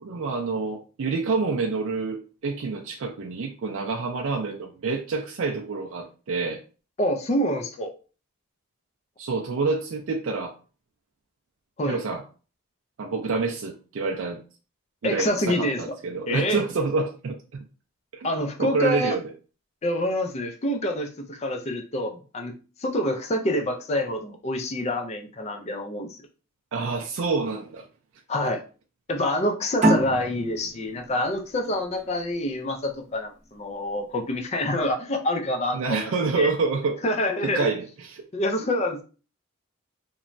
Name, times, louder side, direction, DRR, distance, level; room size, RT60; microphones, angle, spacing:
voice 1, 0.0-6.6 9.2-10.5 11.8-12.2 13.0-14.4 15.0-17.7 18.6-19.2 26.7-27.8 35.7-37.0 37.4-38.2, right 4 dB, 60° right, 0.4 m, -27 dB
voice 2, 7.0-7.9 11.8-12.0 15.0-16.0 16.3-16.6 18.2-19.2 19.8-22.5 22.8-26.2 28.3-28.6 29.1-36.1 36.4-36.5 37.0-37.7 38.3-39.0, left 1 dB, 30° left, 0.4 m, -27 dB
sound 1, 29.8-33.0, right 1 dB, 30° right, 0.8 m, -26 dB
3.0 x 2.2 x 2.5 m
head